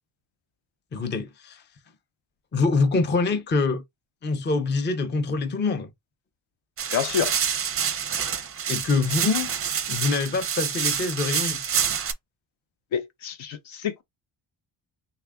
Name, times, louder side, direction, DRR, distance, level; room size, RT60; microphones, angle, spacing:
voice 1, 0.9-1.6 2.5-3.8 4.2-5.9 8.7-9.5 9.9-11.7, left 3 dB, 25° left, 0.5 m, -25 dB
sound 1, 6.8-12.1, right 7 dB, 30° right, 0.5 m, -27 dB
voice 2, 6.9-7.3 12.9-14.0, left 8 dB, 75° left, 0.8 m, -28 dB
3.4 x 2.4 x 3.4 m
wide cardioid pair, 155°, 48 cm